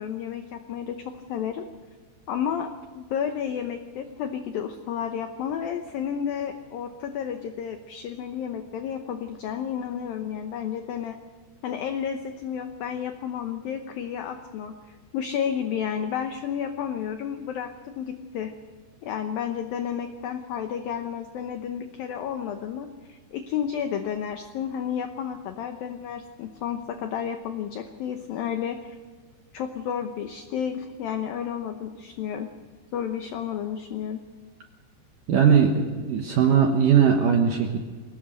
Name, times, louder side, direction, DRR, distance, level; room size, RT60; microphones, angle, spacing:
voice 1, 0.0-1.7 2.3-11.2 11.6-18.5 19.0-29.0 29.5-32.5 32.9-34.2, left 8 dB, 80° left, 7 dB, 2.1 m, -31 dB
voice 2, 35.3-37.8, right 7 dB, 70° right, 3 dB, 2.1 m, -19 dB
22.0 x 18.0 x 6.6 m, 1.5 s
omnidirectional pair, 5.5 m